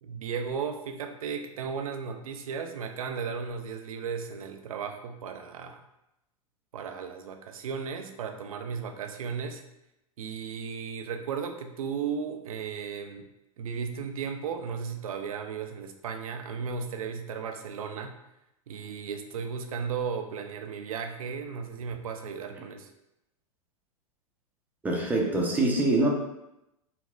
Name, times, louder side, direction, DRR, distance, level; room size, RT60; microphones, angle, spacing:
voice 1, 0.0-5.8 6.7-9.6 10.2-13.2 13.6-18.2 18.7-22.9, right 6 dB, 70° right, 5 dB, 0.4 m, -35 dB
voice 2, 24.8-26.1, right 2 dB, 10° right, -1 dB, 0.6 m, -24 dB
4.1 x 2.0 x 2.5 m, 0.88 s
figure-of-eight pair, 95°, 19 cm